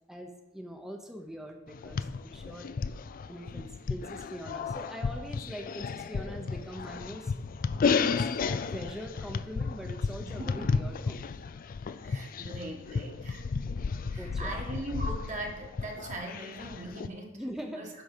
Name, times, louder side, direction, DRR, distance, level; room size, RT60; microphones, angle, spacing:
voice 1, 0.1-2.7 3.3-7.3 7.8-11.4 14.2-14.6 17.3-17.8, equal, ahead, 2 dB, 0.7 m, -42 dB
sound 1, 1.7-17.1, left 5 dB, 40° left, 0.3 m, -33 dB
voice 2, 12.0-13.4 14.1-17.4 17.7-17.9, right 1 dB, 35° right, 0 dB, 1.5 m, -40 dB
10.5 x 3.9 x 6.6 m, 0.98 s
head